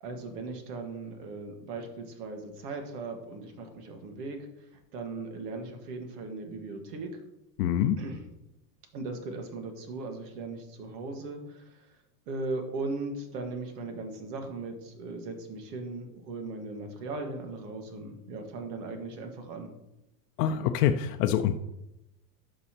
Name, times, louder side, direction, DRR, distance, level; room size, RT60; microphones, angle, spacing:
voice 1, 0.0-4.5 4.9-7.2 8.0-8.2 8.9-11.8 12.3-19.7, right 3 dB, 75° right, 5 dB, 1.7 m, -38 dB
voice 2, 7.6-8.0 20.4-21.5, left 10 dB, 75° left, 6 dB, 0.6 m, -25 dB
11.0 x 5.6 x 2.9 m, 0.91 s
supercardioid pair, 140°, 47 cm